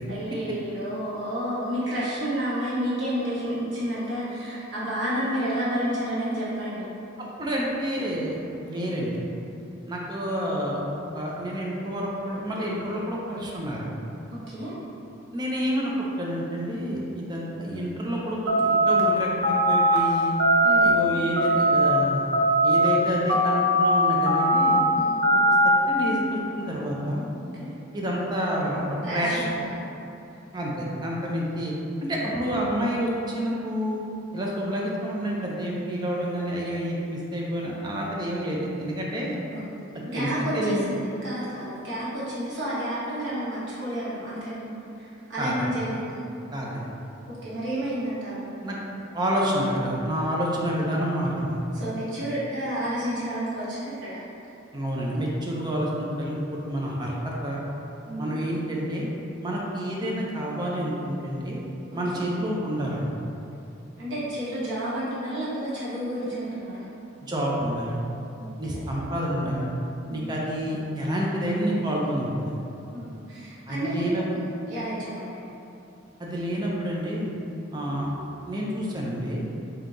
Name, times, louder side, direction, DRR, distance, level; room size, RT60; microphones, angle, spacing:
voice 1, 0.1-6.9 14.3-14.7 20.6-21.0 24.9-25.1 27.6-27.7 29.0-29.8 39.5-39.7 40.0-44.6 45.0-46.2 47.3-48.5 51.7-54.2 58.1-58.4 62.1-62.2 64.0-66.9 68.4-68.8 70.1-70.3 72.9-75.4, right 1 dB, 65° right, -9 dB, 1.3 m, -31 dB
voice 2, 7.4-9.2 9.9-13.9 15.3-20.3 20.8-22.2 22.6-24.8 25.9-27.2 27.9-28.8 29.1-29.4 30.5-31.7 32.0-34.0 34.3-39.4 40.1-40.8 45.4-45.7 46.5-46.9 48.6-48.8 49.1-51.6 54.7-57.6 58.2-59.1 59.4-61.6 61.9-63.1 67.2-68.0 68.6-69.7 70.1-72.6 73.7-74.2 76.2-77.3 77.7-78.1 78.5-79.5, equal, 20° right, -4 dB, 0.5 m, -28 dB
sound 1, 18.5-19.0 19.4-20.0 20.4-20.9 21.4-21.9 22.3-22.9 23.3-23.8 24.3-24.8 25.2-25.8, right 1 dB, 90° right, 0.7 m, -20 dB
3.6 x 2.8 x 3.8 m, 2.8 s
head